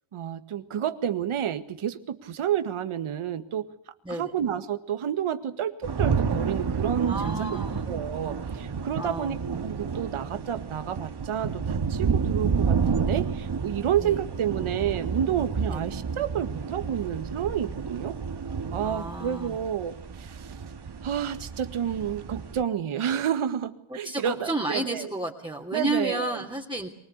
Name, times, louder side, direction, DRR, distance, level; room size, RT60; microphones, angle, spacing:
voice 1, 0.1-3.7 4.1-18.2 18.7-20.6 21.0-25.1 25.7-26.4, right 9 dB, 85° right, 10 dB, 2.0 m, -30 dB
sound 1, 5.8-22.6, right 5 dB, 55° right, 2.3 m, -30 dB
voice 2, 7.0-7.8 9.0-9.4 14.0-14.2 15.7-15.8 18.8-19.6 23.9-26.9, right 2 dB, 10° right, -1 dB, 3.2 m, -32 dB
24.0 x 19.0 x 8.2 m, 0.75 s
cardioid pair, 85°, 48 cm